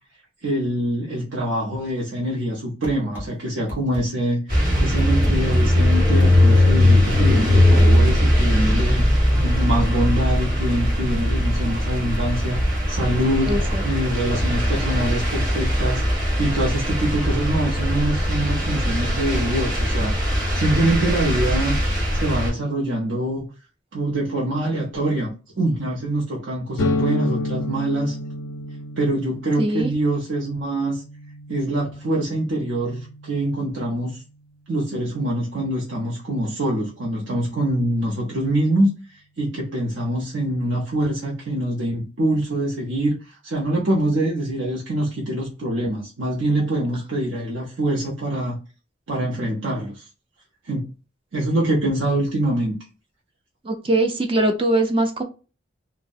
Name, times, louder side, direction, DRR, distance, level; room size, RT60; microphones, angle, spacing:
voice 1, 0.4-21.8 22.1-23.5 23.9-28.2 29.0-31.0 31.5-34.2 34.7-48.6 49.1-50.0 50.6-50.9 51.3-52.8, right 1 dB, 75° right, 0.6 m, -24 dB
sound 1, 2.8-3.3 3.7-4.0 4.5-5.4 5.9-6.3 7.1-7.9, left 1 dB, 10° right, 1.0 m, -32 dB
sound 2, 4.5-22.5, left 1 dB, 45° right, 1.3 m, -20 dB
voice 2, 13.5-13.8 29.6-29.9 53.6-55.2, right 1 dB, 30° right, 0.4 m, -21 dB
sound 3, 26.8-34.4, left 2 dB, 65° left, 0.3 m, -31 dB
2.6 x 2.0 x 2.4 m
head